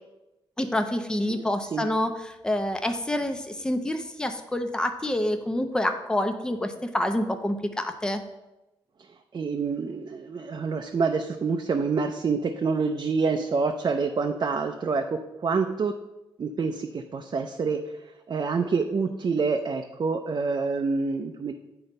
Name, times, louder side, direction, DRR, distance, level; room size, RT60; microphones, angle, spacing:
voice 1, 0.6-8.2, left 1 dB, 10° left, 6 dB, 0.7 m, -27 dB
voice 2, 1.3-1.9 9.3-15.9 16.4-17.8 18.3-21.5, right 4 dB, 45° right, 4 dB, 0.6 m, -27 dB
7.7 x 3.9 x 5.4 m, 0.97 s
cardioid pair, 85°, 10 cm